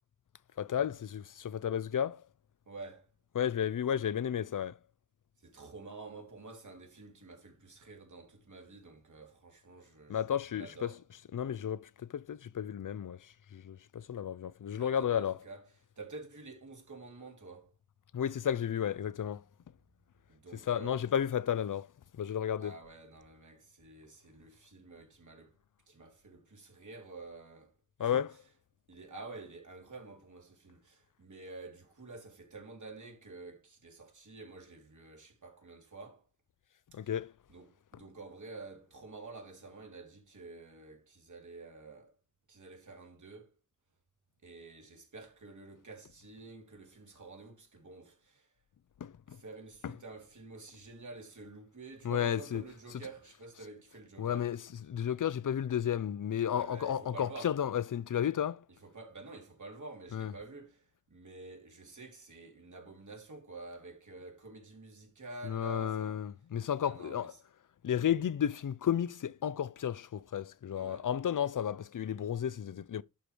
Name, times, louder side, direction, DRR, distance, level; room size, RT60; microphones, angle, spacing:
voice 1, 0.6-2.2 3.3-4.8 10.1-10.9 11.3-15.4 18.1-19.4 20.5-21.9 22.1-22.7 28.0-28.3 36.9-37.3 37.9-38.0 49.0-49.4 49.8-49.9 52.0-52.6 54.2-58.6 60.1-60.3 65.4-67.3 67.8-73.0, left 9 dB, 90° left, 0.6 m, -33 dB
voice 2, 2.7-3.1 5.4-11.0 14.7-15.6 16.0-17.7 20.3-21.0 22.6-25.6 25.9-27.7 28.0-28.2 28.9-36.2 37.0-37.1 37.5-42.1 42.5-43.5 44.4-48.5 49.3-54.5 56.6-57.5 58.8-66.3 66.8-67.4 70.7-71.1, right 3 dB, 75° right, 3.1 m, -49 dB
11.5 x 5.0 x 4.5 m
wide cardioid pair, 80°, 31 cm